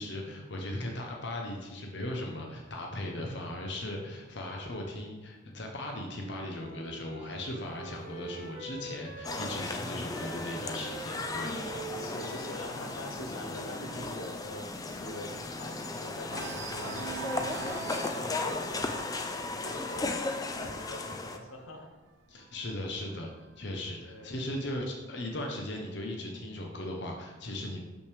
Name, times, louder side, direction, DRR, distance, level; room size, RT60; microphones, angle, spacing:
voice 1, 0.0-11.6 22.3-23.3 23.6-27.8, left 1 dB, 55° left, 1 dB, 0.8 m, -38 dB
Wind instrument woodwind instrument, 6.0-9.8 10.1-14.2, right 3 dB, 40° right, 1.1 m, -45 dB
sound 1, 7.5-11.1 11.5-11.8 12.1-12.2 12.6-15.9 16.2-22.8 23.6-24.6, right 6 dB, 65° right, 0.4 m, -46 dB
sound 2, 9.2-21.4, left 3 dB, 15° left, 0.3 m, -36 dB
voice 2, 9.8-10.1 11.9-14.7 15.0-21.9 22.3-22.4 24.0-24.4, left 1 dB, 85° left, 3 dB, 0.9 m, -44 dB
6.4 x 5.9 x 3.4 m, 1.1 s
head